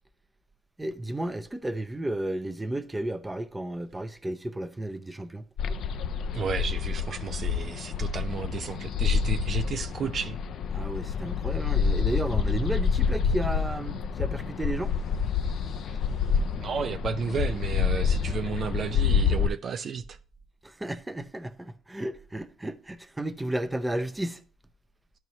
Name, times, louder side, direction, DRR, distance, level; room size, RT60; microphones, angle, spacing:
voice 1, 0.8-5.4 10.7-14.9 20.6-24.4, right 1 dB, 15° right, 0.6 m, -33 dB
sound 1, 5.6-19.5, left 6 dB, 70° left, 0.4 m, -27 dB
voice 2, 6.3-10.4 15.9-16.0 16.6-20.2, right 6 dB, 55° right, 0.4 m, -33 dB
12.0 x 4.7 x 2.9 m
cardioid pair, 90°, 0 cm